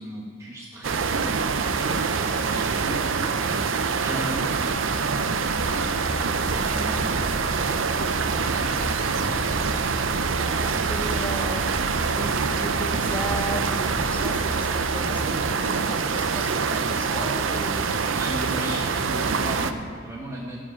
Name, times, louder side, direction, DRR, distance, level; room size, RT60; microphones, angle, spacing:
voice 1, 0.0-3.3 4.0-4.9 5.3-7.3 8.0-9.0 18.1-20.6, right 1 dB, 15° right, -4 dB, 1.1 m, -37 dB
sound 1, 0.8-19.7, right 5 dB, 80° right, 0.5 m, -25 dB
sound 2, 5.5-15.3, left 1 dB, 35° left, 0.6 m, -35 dB
voice 2, 10.1-11.6 12.1-17.8, equal, 10° left, 1 dB, 0.9 m, -36 dB
11.5 x 5.0 x 6.9 m, 2.2 s
head